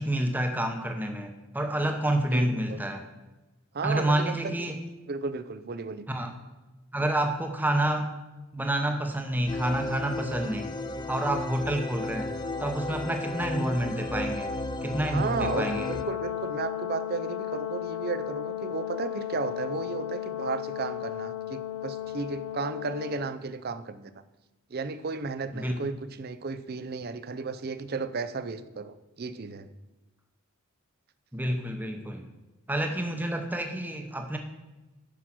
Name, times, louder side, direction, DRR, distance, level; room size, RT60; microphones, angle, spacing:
voice 1, 0.0-3.0 3.8-4.8 6.1-6.3 6.9-8.1 8.5-10.7 11.1-12.3 12.6-14.5 14.8-15.9 25.5-25.8 31.3-32.3 32.7-34.4, right 1 dB, 10° right, 4 dB, 0.9 m, -28 dB
voice 2, 2.3-2.8 3.7-4.7 5.1-6.1 15.1-24.1 24.7-29.7, right 4 dB, 45° right, 13 dB, 0.5 m, -34 dB
sound 1, 9.5-16.0, left 2 dB, 20° left, 0.4 m, -34 dB
Brass instrument, 15.3-23.3, left 11 dB, 80° left, 1.3 m, -35 dB
10.0 x 6.4 x 6.0 m, 1.1 s
head